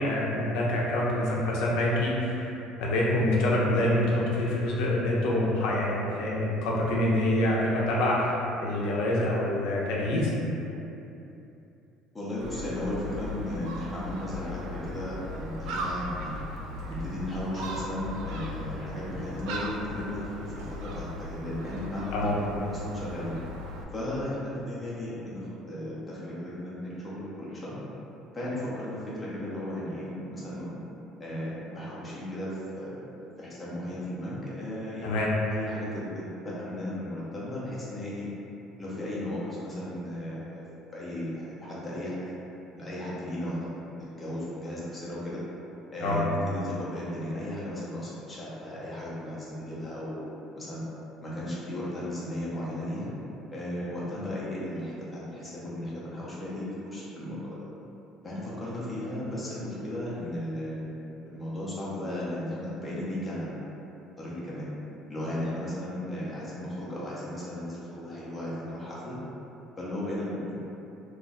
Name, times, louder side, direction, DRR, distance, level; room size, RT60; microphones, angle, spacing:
voice 1, 0.0-2.5 2.8-10.3 22.1-22.3 35.0-35.3 46.0-46.2, left 1 dB, 75° left, -4 dB, 0.5 m, -26 dB
voice 2, 12.1-16.4 16.9-23.4 23.9-27.8 28.3-30.8 31.2-35.2 35.5-38.3 38.8-40.6 40.9-42.4 42.7-45.4 45.9-50.2 50.6-50.8 51.2-53.1 53.5-57.7 58.2-61.0 61.2-63.6 64.2-64.7 65.1-69.2 69.8-70.6, left 1 dB, 10° left, -8 dB, 0.6 m, -35 dB
Gull seagull, 12.4-23.8, equal, 80° right, 0.3 m, -37 dB
2.4 x 2.3 x 4.0 m, 2.9 s
cardioid pair, 160°, 0 cm